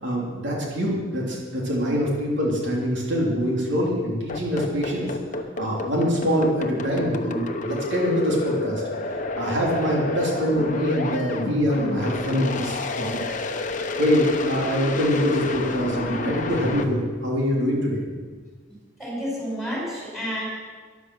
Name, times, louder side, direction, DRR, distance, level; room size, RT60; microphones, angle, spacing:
voice 1, 0.0-5.1 5.6-13.4 14.0-18.0, equal, 70° right, -3 dB, 3.2 m, -24 dB
sound 1, 4.3-16.8, left 2 dB, 40° left, 1.0 m, -30 dB
voice 2, 19.0-20.4, equal, ahead, -4 dB, 5.7 m, -30 dB
13.5 x 11.5 x 6.3 m, 1.5 s
head